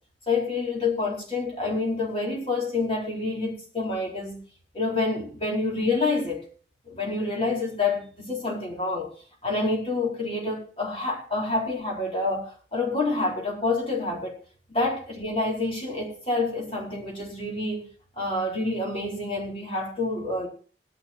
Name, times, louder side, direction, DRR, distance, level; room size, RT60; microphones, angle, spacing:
voice 1, 0.3-4.4 4.7-6.4 6.9-9.1 9.4-14.3 14.7-17.9 18.2-20.5, left 3 dB, 35° left, -3 dB, 4.3 m, -28 dB
21.0 x 11.5 x 2.9 m, 0.41 s
head